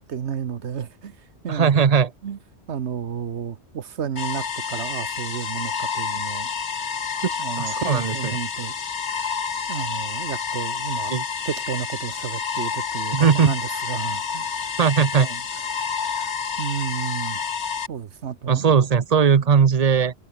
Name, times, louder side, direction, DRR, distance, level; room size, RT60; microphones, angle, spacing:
voice 1, 0.1-1.2 1.4-1.8 2.2-2.4 2.7-6.5 7.4-8.7 9.7-11.1 11.4-14.7 15.2-15.4 15.7-17.4 17.9-18.8, right 8 dB, 75° right, 1.3 m, -32 dB
voice 2, 1.5-2.1 7.2-8.4 11.1-11.2 13.1-13.5 14.8-15.3 18.5-20.1, right 6 dB, 40° right, 0.8 m, -19 dB
sound 1, 4.2-17.9, left 6 dB, 70° left, 1.7 m, -29 dB
omnidirectional pair, 1.2 m